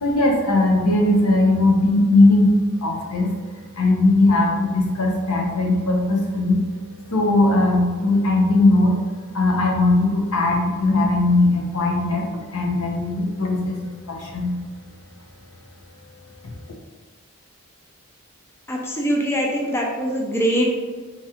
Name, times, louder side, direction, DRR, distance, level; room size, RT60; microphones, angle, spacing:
voice 1, 0.0-2.5 2.8-3.3 3.8-6.6 7.1-9.0 9.3-14.5, left 2 dB, 80° left, 0 dB, 0.8 m, -19 dB
voice 2, 18.7-20.9, equal, 10° left, -1 dB, 0.4 m, -23 dB
3.6 x 3.1 x 2.9 m, 1.4 s
head